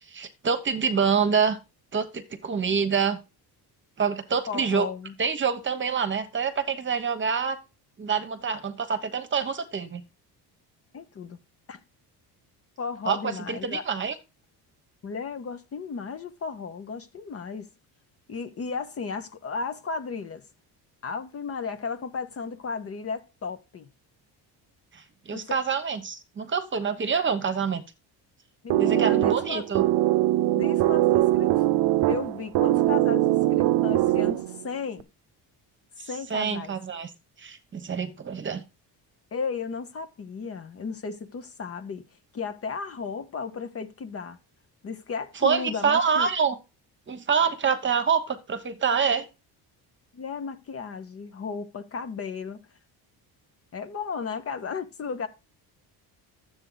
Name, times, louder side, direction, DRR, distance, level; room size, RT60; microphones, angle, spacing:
voice 1, 0.1-1.6 1.9-3.2 4.0-4.9 5.2-7.6 8.0-10.0 13.1-14.1 24.9-27.8 28.8-29.8 36.0-37.1 37.4-38.6 45.4-46.5 47.1-49.3, right 6 dB, 30° right, 1.2 m, -26 dB
voice 2, 4.5-5.1 10.9-11.4 11.7-11.8 12.8-13.8 15.0-17.7 18.3-20.4 21.0-23.9 25.3-25.6 28.6-29.6 30.5-31.6 32.1-35.1 36.1-36.7 39.3-42.0 42.3-44.4 44.8-46.3 50.1-52.6 53.7-55.3, left 5 dB, 35° left, 1.0 m, -34 dB
sound 1, 28.7-34.7, right 15 dB, 70° right, 0.7 m, -22 dB
12.0 x 8.0 x 4.0 m
cardioid pair, 145°, 41 cm